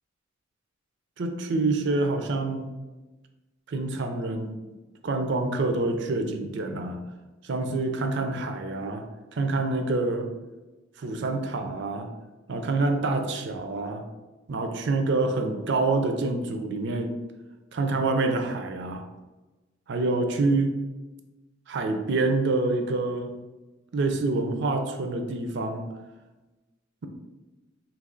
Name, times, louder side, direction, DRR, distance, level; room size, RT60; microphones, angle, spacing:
voice 1, 1.2-2.7 3.7-4.5 5.0-7.0 7.4-9.0 9.3-10.3 11.0-12.1 12.5-14.0 14.5-17.1 17.7-19.0 19.9-20.7 21.7-23.3 23.9-25.9, right 3 dB, 65° right, 5 dB, 0.5 m, -26 dB
3.2 x 2.9 x 3.7 m, 1.1 s
head